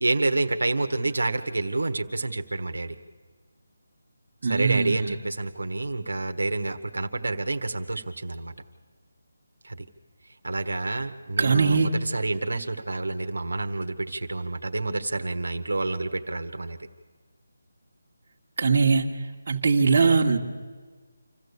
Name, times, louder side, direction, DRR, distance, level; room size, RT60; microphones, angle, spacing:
voice 1, 0.0-3.0 4.4-8.5 9.6-9.8 10.4-16.8, right 2 dB, 90° right, 6 dB, 1.4 m, -28 dB
voice 2, 4.4-5.1 11.4-11.9 18.6-19.1 19.5-20.4, right 4 dB, 45° right, 1 dB, 1.6 m, -21 dB
26.5 x 14.0 x 8.3 m, 1.5 s
figure-of-eight pair, 165°, 0 cm